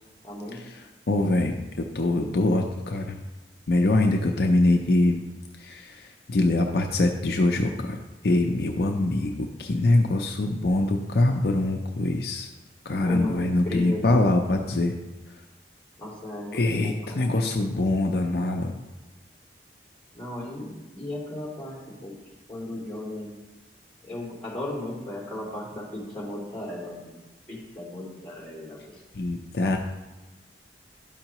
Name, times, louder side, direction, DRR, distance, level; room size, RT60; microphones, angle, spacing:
voice 1, 0.2-0.7 13.0-14.4 16.0-17.3 20.1-22.2 22.5-23.4 24.0-27.2 27.5-29.0 29.6-29.7, left 1 dB, 5° left, -6 dB, 2.6 m, -36 dB
voice 2, 1.1-3.2 3.7-5.2 5.6-12.5 12.9-14.9 16.5-18.7 29.1-29.8, left 2 dB, 60° left, 3 dB, 0.5 m, -24 dB
11.5 x 5.6 x 3.0 m, 1.1 s
head